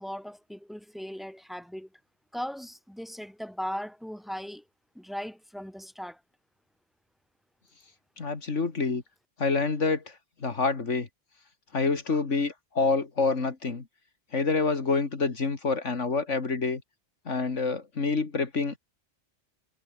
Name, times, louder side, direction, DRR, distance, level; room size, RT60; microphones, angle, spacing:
voice 1, 0.0-1.9 2.3-4.6 4.9-6.2, equal, ahead, 4.8 m, -38 dB
voice 2, 8.2-9.0 9.4-10.1 10.4-11.1 11.7-13.8 14.3-16.8 17.3-18.8, left 4 dB, 75° left, 2.7 m, -27 dB
omnidirectional pair, 1.3 m